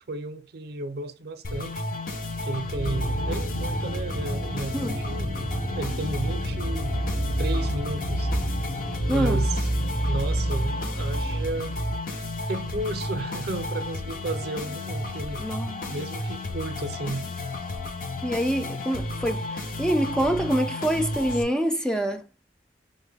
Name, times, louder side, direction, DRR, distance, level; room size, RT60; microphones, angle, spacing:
voice 1, 0.1-1.8 2.4-5.4 5.8-7.0 7.4-8.3 9.0-9.7 10.0-11.8 12.5-15.4 15.9-17.3, right 2 dB, 60° right, 0.5 m, -33 dB
sound 1, 1.4-21.4, left 2 dB, 50° left, 0.6 m, -33 dB
sound 2, 2.7-12.0, right 1 dB, 90° left, 1.7 m, -29 dB
voice 2, 9.1-9.4 15.4-15.8 18.2-22.2, equal, 5° left, 0.3 m, -26 dB
5.4 x 2.1 x 3.3 m
head